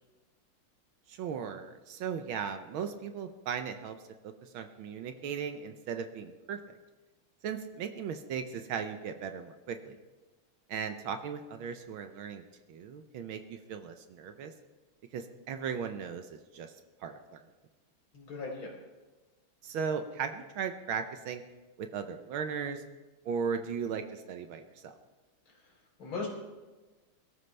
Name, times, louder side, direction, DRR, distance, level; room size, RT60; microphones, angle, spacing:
voice 1, 1.1-4.0 4.2-6.6 7.4-10.0 10.7-12.4 12.7-14.5 15.1-16.7 17.0-17.4 19.6-21.4 21.8-22.8 23.2-24.9, right 6 dB, 75° right, 8 dB, 1.5 m, -37 dB
voice 2, 18.1-18.7 25.5-25.7 26.0-26.3, left 4 dB, 70° left, -1 dB, 4.0 m, -38 dB
22.0 x 13.5 x 3.3 m, 1.2 s
omnidirectional pair, 2.3 m